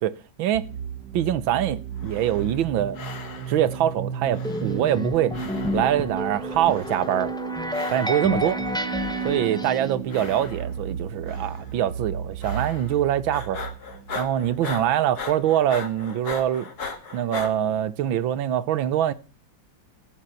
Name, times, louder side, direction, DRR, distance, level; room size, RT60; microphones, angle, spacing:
voice 1, 0.0-0.7 1.1-3.0 3.5-5.4 5.7-7.3 7.9-8.6 9.2-13.6 14.1-16.7 17.1-19.1, right 11 dB, 80° right, 1.7 m, -24 dB
sound 1, 0.5-16.1, right 7 dB, 65° right, 1.5 m, -34 dB
sound 2, 1.9-2.7 2.9-3.8 4.3-5.1 5.3-6.1 6.6-7.3 7.7-8.4 8.9-9.6 10.1-10.9 11.3-11.7 12.4-13.0 13.3-17.5, left 4 dB, 55° left, 2.3 m, -38 dB
sound 3, 4.4-9.9, left 2 dB, 5° left, 0.8 m, -30 dB
14.5 x 8.2 x 5.7 m
omnidirectional pair, 2.1 m